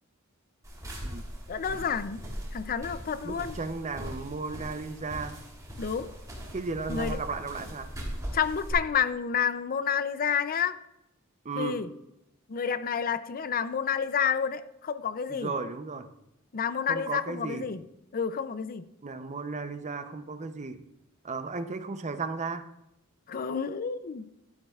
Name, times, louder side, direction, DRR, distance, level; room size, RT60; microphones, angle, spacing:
sound 1, 0.6-8.7, equal, 15° right, 3.1 m, -40 dB
voice 1, 1.5-2.2 2.5-3.5 5.8-6.1 6.9-7.2 8.3-10.8 11.6-11.9 12.5-15.5 16.5-17.8 18.1-18.8 23.3-24.3, left 7 dB, 40° left, 0.5 m, -29 dB
voice 2, 3.2-5.4 6.5-7.9 11.4-11.8 15.3-16.1 16.9-17.7 19.0-20.8 21.2-22.6, right 4 dB, 35° right, 0.7 m, -35 dB
12.0 x 12.0 x 2.4 m
head